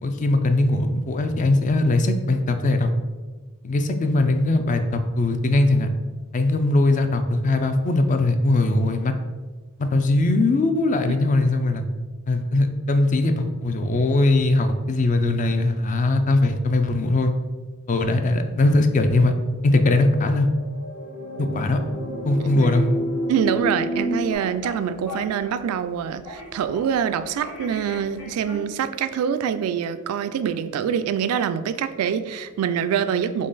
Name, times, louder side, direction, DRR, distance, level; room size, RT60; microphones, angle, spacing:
voice 1, 0.0-2.9 3.6-5.9 6.3-9.1 9.8-11.8 12.3-17.3 17.9-19.3 19.6-20.5 21.4-21.8 22.3-22.9, left 2 dB, 35° left, 7 dB, 0.4 m, -20 dB
sound 1, 19.5-24.3, equal, 65° left, 1.1 m, -30 dB
sound 2, 21.7-28.6, left 2 dB, 85° left, 1.4 m, -42 dB
voice 2, 23.3-33.5, right 8 dB, 85° right, 13 dB, 0.3 m, -25 dB
3.8 x 3.1 x 3.9 m, 1.3 s
head